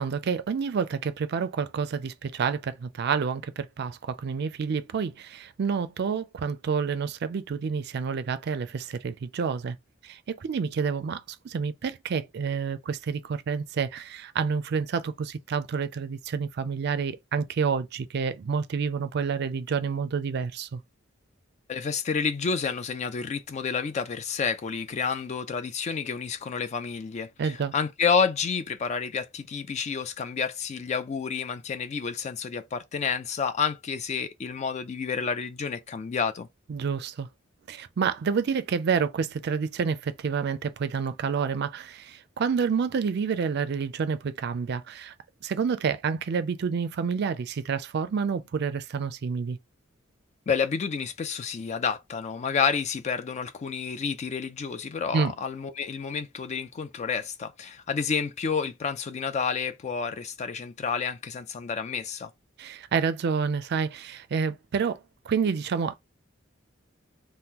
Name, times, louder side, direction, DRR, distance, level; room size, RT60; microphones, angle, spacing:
voice 1, 0.0-9.8 10.0-20.8 27.4-27.7 36.7-37.3 37.7-45.1 45.4-49.6 55.1-55.3 62.6-65.0 65.3-66.0, right 6 dB, 55° right, 0.4 m, -29 dB
voice 2, 21.7-36.5 50.5-62.3, left 6 dB, 35° left, 0.3 m, -29 dB
2.9 x 2.1 x 3.6 m
head